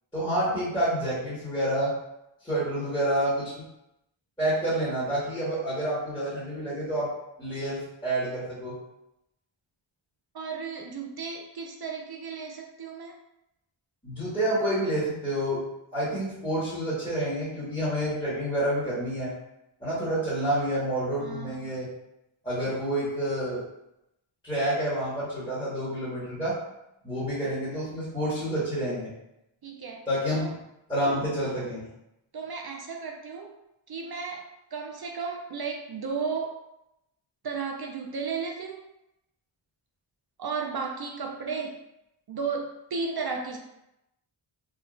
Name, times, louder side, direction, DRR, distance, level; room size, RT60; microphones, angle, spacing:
voice 1, 0.1-1.9 2.4-3.5 4.4-7.1 7.4-8.8 14.0-15.6 15.9-19.3 19.8-21.9 22.4-23.6 24.4-26.5 27.0-29.1 30.1-30.5 30.9-31.9, right 1 dB, 10° left, -12 dB, 1.5 m, -28 dB
voice 2, 10.3-13.2 21.2-21.7 29.6-30.0 30.4-30.5 32.3-33.5 33.9-34.5 34.7-36.6 37.4-38.8 40.4-41.8 42.3-43.6, right 5 dB, 50° right, 1 dB, 0.5 m, -34 dB
3.7 x 2.3 x 2.4 m, 0.86 s
wide cardioid pair, 65°, 50 cm